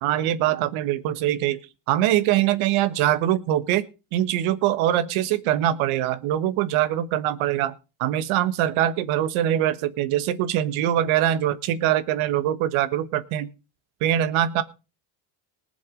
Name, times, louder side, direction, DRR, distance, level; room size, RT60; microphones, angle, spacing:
voice 1, 0.0-1.6 1.9-3.9 4.1-7.7 8.0-13.5 14.0-14.6, right 12 dB, 80° right, 12 dB, 1.5 m, -23 dB
19.5 x 7.1 x 5.1 m, 0.32 s
supercardioid pair, 90°, 48 cm